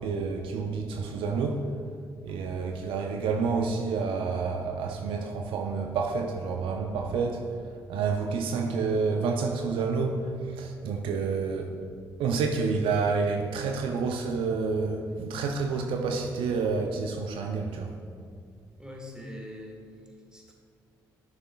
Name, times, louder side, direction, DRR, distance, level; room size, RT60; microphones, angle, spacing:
voice 1, 0.0-1.7 2.2-11.7 12.2-17.9, right 4 dB, 70° right, 3 dB, 0.5 m, -29 dB
voice 2, 18.8-20.5, left 1 dB, 10° right, -1 dB, 1.9 m, -43 dB
11.0 x 6.6 x 2.3 m, 2.2 s
hypercardioid pair, 45°, 9 cm